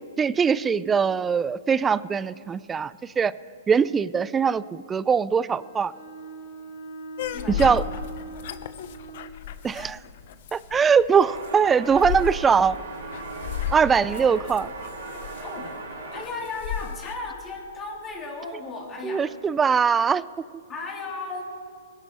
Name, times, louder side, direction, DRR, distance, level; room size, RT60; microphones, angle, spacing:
voice 1, 0.2-3.3 3.7-5.9 7.5-7.8 9.6-10.0 10.5-12.8 13.7-14.7 19.0-20.3, right 6 dB, 15° right, 18 dB, 0.3 m, -21 dB
Bowed string instrument, 5.4-9.4, right 1 dB, 80° left, 3.9 m, -41 dB
sound 1, 7.2-17.2, left 9 dB, 55° left, 0.8 m, -34 dB
voice 2, 7.3-8.0 15.4-15.6 16.1-19.3 20.7-21.4, left 3 dB, 20° left, -2 dB, 3.2 m, -35 dB
sound 2, 11.3-16.3, right 3 dB, 80° right, 4.0 m, -38 dB
20.0 x 11.0 x 4.7 m, 2.3 s
hypercardioid pair, 140°, 0 cm